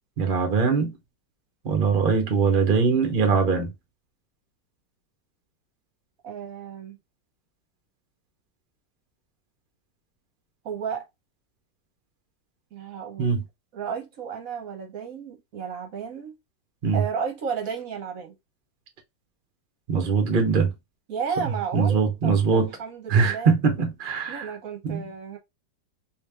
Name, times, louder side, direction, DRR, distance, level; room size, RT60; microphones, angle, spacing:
voice 1, 0.2-0.9 1.6-3.7 13.2-13.4 16.8-17.0 19.9-20.7 21.7-22.7 23.1-24.5 24.8-25.0, right 5 dB, 40° right, 0.7 m, -22 dB
voice 2, 6.2-7.0 10.6-11.1 12.7-13.4 13.7-16.4 16.9-18.4 21.1-23.5 24.3-25.4, right 6 dB, 60° right, 1.2 m, -33 dB
3.2 x 2.9 x 3.4 m
omnidirectional pair, 1.9 m